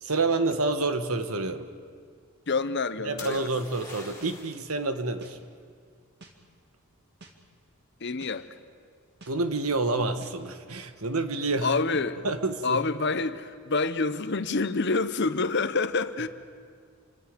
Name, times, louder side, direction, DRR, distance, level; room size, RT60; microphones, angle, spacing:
voice 1, 0.0-1.7 3.0-5.4 9.3-11.7 12.2-12.8, right 3 dB, 85° right, 9 dB, 1.4 m, -28 dB
voice 2, 2.5-3.5 8.0-8.5 11.6-12.2 12.6-16.3, left 3 dB, 55° left, 12 dB, 0.9 m, -27 dB
sound 1, 3.2-4.6 8.3-8.8, left 3 dB, 15° left, 4.4 m, -44 dB
sound 2, 3.2-3.3 4.2-4.3 5.2-5.3 6.2-6.3 7.2-7.3 8.2-8.3 9.2-9.3 10.2-10.3, right 2 dB, 50° right, 2.3 m, -49 dB
28.5 x 25.0 x 5.3 m, 2.1 s
head